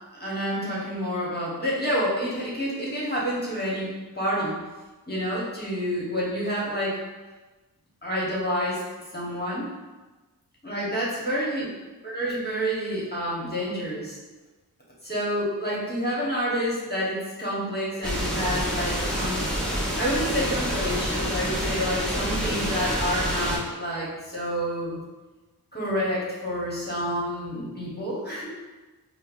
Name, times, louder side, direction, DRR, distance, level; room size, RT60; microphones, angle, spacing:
voice 1, 0.2-4.6 5.1-7.0 8.0-8.8 9.1-9.7 10.6-11.7 12.0-14.2 15.0-19.5 20.0-25.0 25.7-28.5, equal, 25° left, -7 dB, 1.1 m, -28 dB
sound 1, 18.0-23.6, equal, ahead, 0.7 m, -27 dB
5.3 x 2.0 x 2.5 m, 1.2 s
wide cardioid pair, 55°, 39 cm